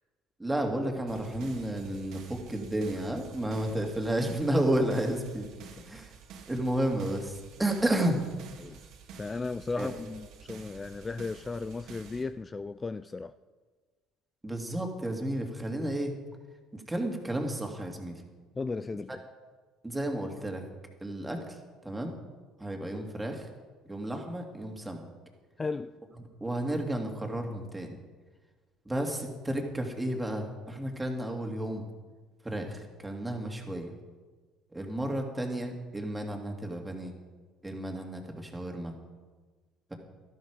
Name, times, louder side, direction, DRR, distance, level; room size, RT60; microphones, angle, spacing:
voice 1, 0.4-5.5 5.9-6.1 6.5-8.3 9.8-9.9 14.4-16.1 16.7-18.2 19.8-20.7 21.0-22.2 22.6-23.5 23.9-25.0 26.4-28.0 28.8-31.8 32.4-33.9 34.7-37.2 37.6-38.9, right 1 dB, 10° right, 2.7 m, -32 dB
sound 1, 1.1-12.2, right 6 dB, 65° right, 2.0 m, -50 dB
voice 2, 9.1-13.4 18.5-19.2 25.6-26.0, left 3 dB, 25° left, 0.4 m, -36 dB
13.0 x 12.0 x 5.2 m
hypercardioid pair, 65°, 0 cm